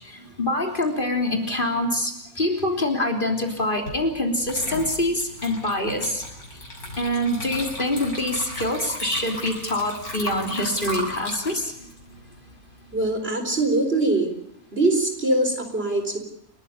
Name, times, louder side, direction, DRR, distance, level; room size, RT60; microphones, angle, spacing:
voice 1, 0.4-2.1 2.4-6.2 7.0-11.7, left 1 dB, 35° left, 3 dB, 3.6 m, -25 dB
Water / Liquid, 3.9-4.0 4.4-13.0, left 1 dB, 90° left, 7.3 m, -35 dB
voice 2, 12.9-14.3 14.7-16.2, right 2 dB, 40° right, 5 dB, 4.4 m, -22 dB
29.5 x 14.0 x 8.3 m, 0.76 s
omnidirectional pair, 1.5 m